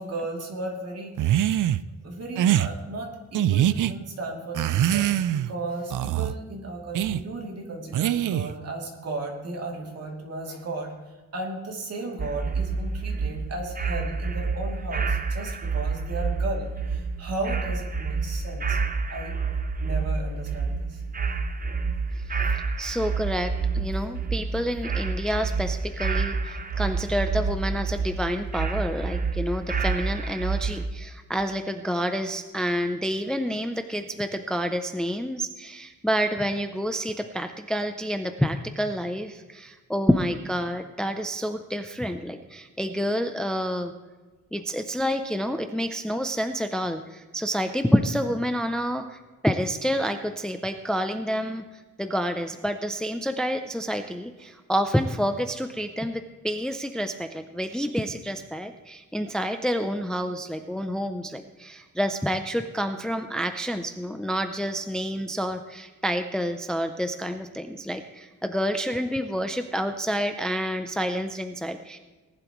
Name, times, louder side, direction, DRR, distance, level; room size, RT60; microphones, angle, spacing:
voice 1, 0.0-1.6 2.0-18.8 19.1-19.4 19.8-21.0 22.4-22.5, right 2 dB, 55° right, 0 dB, 2.9 m, -35 dB
sound 1, 1.2-1.8 2.4-2.7 3.3-3.9 4.5-5.5 5.9-6.3 7.0-7.2 7.9-8.6, right 12 dB, 75° right, 0.5 m, -23 dB
sound 2, 12.2-30.9, right 4 dB, 30° right, 0.8 m, -28 dB
voice 2, 22.8-43.9 44.5-51.6 52.0-72.0, equal, ahead, 7 dB, 0.5 m, -28 dB
19.0 x 11.5 x 3.1 m, 1.3 s
wide cardioid pair, 170°, 31 cm